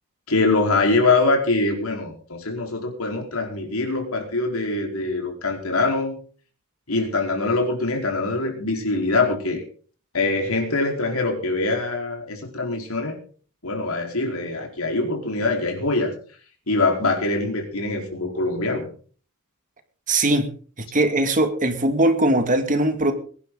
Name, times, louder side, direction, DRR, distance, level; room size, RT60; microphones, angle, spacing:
voice 1, 0.3-6.2 6.9-9.6 10.1-13.2 13.6-16.1 16.7-18.9, left 3 dB, 80° left, 1 dB, 4.6 m, -23 dB
voice 2, 20.1-20.5 20.9-23.1, right 1 dB, 40° right, 7 dB, 2.2 m, -20 dB
22.5 x 11.0 x 4.0 m, 0.43 s
head